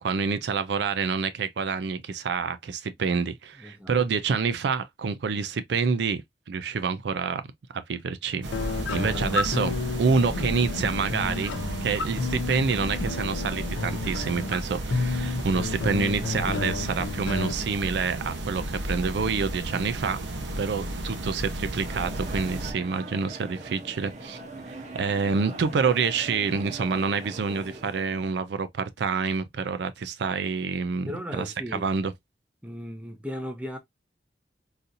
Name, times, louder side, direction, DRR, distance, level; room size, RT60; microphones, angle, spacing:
voice 1, 0.0-6.2 6.5-7.4 7.7-8.5 8.9-11.5 11.8-20.2 20.6-24.4 24.7-31.5 31.7-32.1, right 5 dB, 70° right, 0.4 m, -27 dB
voice 2, 3.6-4.0 9.0-9.4 31.1-31.9 32.6-33.8, equal, 5° right, 0.7 m, -37 dB
sound 1, 8.4-22.7, right 1 dB, 85° right, 0.9 m, -33 dB
sound 2, 8.5-17.5, left 4 dB, 85° left, 0.4 m, -31 dB
sound 3, 21.8-28.3, right 2 dB, 40° right, 0.7 m, -41 dB
4.0 x 2.6 x 2.5 m
head